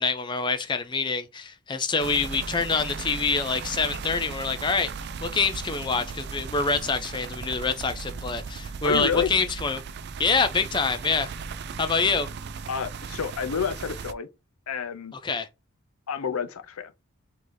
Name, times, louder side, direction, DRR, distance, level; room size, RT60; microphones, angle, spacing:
voice 1, 0.0-4.9 5.2-9.8 10.2-11.3 11.8-12.3 15.2-15.5, left 4 dB, 20° left, 0.4 m, -26 dB
sound 1, 2.0-14.1, right 5 dB, 50° right, 0.4 m, -37 dB
voice 2, 8.8-9.3 12.7-14.3 14.7-15.2 16.1-16.9, left 6 dB, 80° left, 0.6 m, -29 dB
5.0 x 2.7 x 3.9 m
head